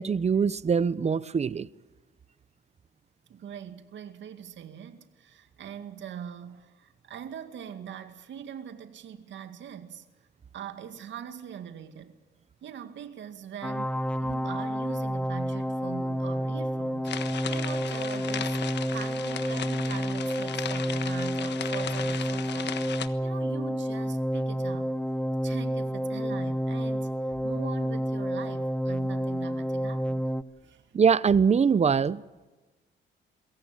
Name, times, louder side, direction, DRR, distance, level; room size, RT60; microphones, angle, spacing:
voice 1, 0.0-1.7 30.9-32.2, right 6 dB, 35° right, 0.8 m, -23 dB
voice 2, 3.3-10.1 10.5-12.2 12.6-30.3 30.6-30.8, right 8 dB, 70° right, 2.3 m, -42 dB
sound 1, 13.6-30.4, equal, 5° left, 0.9 m, -30 dB
sound 2, 17.1-23.1, left 9 dB, 60° left, 1.4 m, -37 dB
23.0 x 17.0 x 9.1 m
cardioid pair, 90°, 20 cm